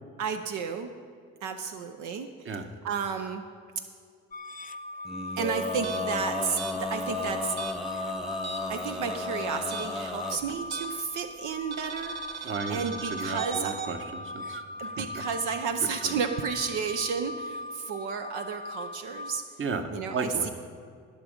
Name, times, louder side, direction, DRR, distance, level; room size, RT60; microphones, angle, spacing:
voice 1, 0.2-0.9 1.4-3.4 5.4-7.6 8.7-13.7 14.8-19.4 19.9-20.5, right 6 dB, 80° right, 6 dB, 0.7 m, -32 dB
sound 1, 4.3-19.4, left 2 dB, 30° left, 0.5 m, -40 dB
Male singing, 5.0-10.4, left 2 dB, ahead, 0.9 m, -34 dB
sound 2, 5.8-8.9 9.1-11.2 11.7-13.9, right 7 dB, 60° right, 1.3 m, -39 dB
voice 2, 12.4-12.8 13.1-15.2 16.0-16.1 19.6-20.5, right 4 dB, 40° right, 7 dB, 1.1 m, -34 dB
18.5 x 6.3 x 5.1 m, 2.2 s
cardioid pair, 90°, 30 cm